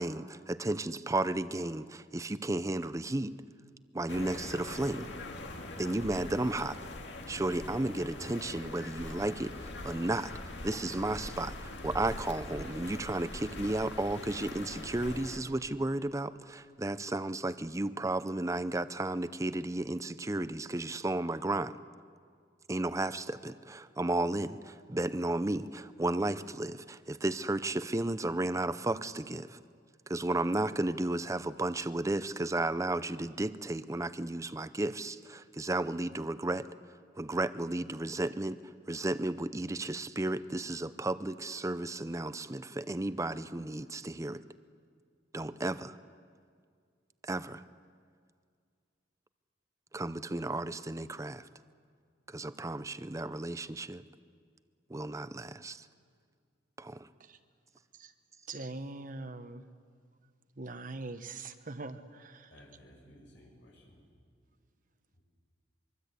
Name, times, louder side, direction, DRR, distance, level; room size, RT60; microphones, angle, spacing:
voice 1, 0.0-3.3 3.9-5.1 5.8-6.8 7.3-10.3 10.6-21.8 22.7-29.6 30.1-36.7 37.2-38.6 38.9-44.4 45.3-46.0 47.2-47.6 49.9-51.5 52.3-54.0 54.9-55.8 56.8-57.1, right 2 dB, 15° right, 14 dB, 0.6 m, -33 dB
sound 1, 4.1-15.4, left 2 dB, 70° left, 2.2 m, -43 dB
voice 2, 58.5-59.6 60.6-62.5, right 3 dB, 45° right, 8 dB, 1.2 m, -42 dB
voice 3, 62.5-64.0 65.1-65.2, equal, 90° left, -2 dB, 7.3 m, -56 dB
24.0 x 23.5 x 8.3 m, 2.1 s
head